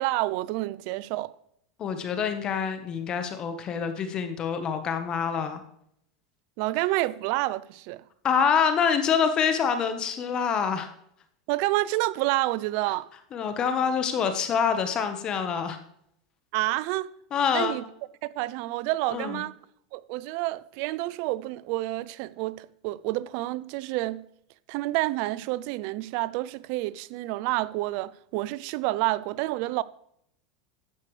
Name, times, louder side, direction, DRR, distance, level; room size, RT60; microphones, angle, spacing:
voice 1, 0.0-1.3 6.6-8.0 11.5-13.1 16.5-17.1 17.5-17.8 18.2-19.5 19.9-24.2 24.7-29.8, right 18 dB, 60° right, 0.5 m, -29 dB
voice 2, 1.8-5.6 8.2-10.9 13.3-15.8 17.3-17.8 19.1-19.4, left 6 dB, 35° left, 1.2 m, -26 dB
12.0 x 8.2 x 3.3 m
hypercardioid pair, 110°, 2 cm